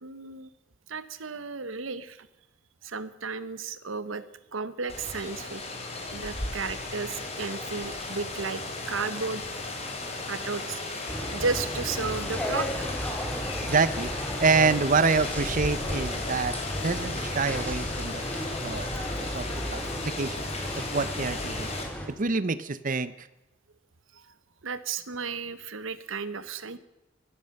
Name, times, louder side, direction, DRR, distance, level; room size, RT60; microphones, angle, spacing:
voice 1, 0.0-0.5 0.9-2.3 2.8-4.2 4.5-5.6 6.1-9.4 10.3-10.8 11.3-12.7 24.1-24.3 24.6-26.8, right 4 dB, 90° right, 14 dB, 1.1 m, -33 dB
Rain, 4.9-21.8, left 2 dB, 35° left, 3.2 m, -35 dB
sound 1, 11.1-22.1, equal, 5° left, 2.5 m, -34 dB
voice 2, 13.6-14.1 14.4-16.5 16.8-20.5 20.8-21.7 22.2-23.3, right 4 dB, 45° right, 15 dB, 0.8 m, -27 dB
15.0 x 13.5 x 6.6 m, 0.98 s
head